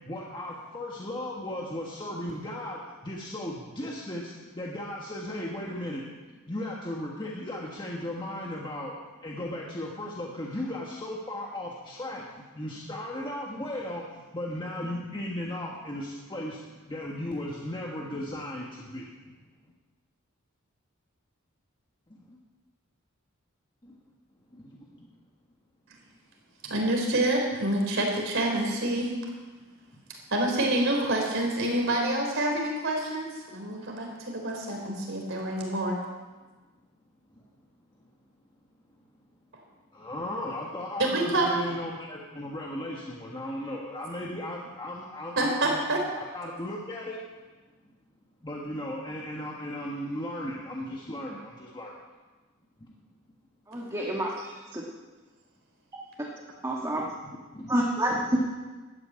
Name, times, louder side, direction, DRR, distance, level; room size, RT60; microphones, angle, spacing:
voice 1, 0.1-6.0 6.5-8.9 9.2-12.2 12.5-14.0 14.3-16.6 16.9-19.0 39.9-45.8 46.2-47.2 48.4-51.9 57.0-57.1 57.5-57.7 58.1-58.2, left 1 dB, 20° left, -2 dB, 1.4 m, -36 dB
voice 2, 26.6-29.1 30.3-36.0 41.0-41.6 45.4-46.0, right 1 dB, 65° right, 0 dB, 3.9 m, -27 dB
voice 3, 53.7-54.8 56.6-57.0 57.7-58.1, right 1 dB, 15° right, -3 dB, 1.6 m, -29 dB
12.5 x 9.5 x 8.9 m, 1.3 s
head